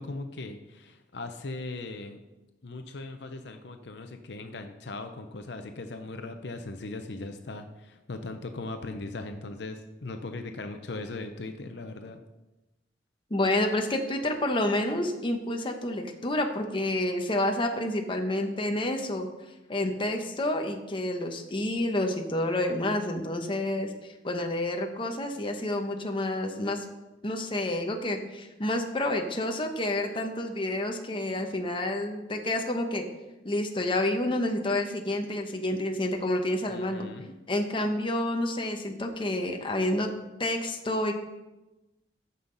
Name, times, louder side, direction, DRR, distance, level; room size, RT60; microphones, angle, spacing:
voice 1, 0.0-2.2 2.6-12.2 36.7-37.3, left 2 dB, 65° left, 7 dB, 0.7 m, -39 dB
voice 2, 13.3-19.3 19.7-26.8 27.2-33.0 33.4-37.1 37.5-40.1 40.4-41.1, left 1 dB, 30° left, 4 dB, 0.9 m, -29 dB
14.0 x 5.6 x 3.9 m, 1.0 s
head